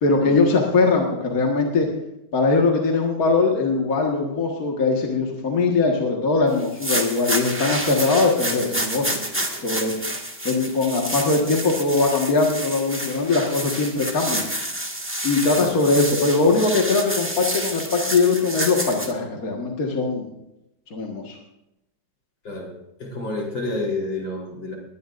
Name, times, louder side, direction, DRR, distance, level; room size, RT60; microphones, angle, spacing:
voice 1, 0.0-1.9 2.3-9.2 9.6-9.9 10.4-14.4 15.2-20.3 20.9-21.4, left 3 dB, 50° left, 0 dB, 2.1 m, -21 dB
sound 1, 6.6-19.1, right 1 dB, 5° right, 1.4 m, -29 dB
voice 2, 23.0-24.8, left 2 dB, 75° left, -1 dB, 4.7 m, -29 dB
21.5 x 17.5 x 2.6 m, 0.87 s
omnidirectional pair, 2.1 m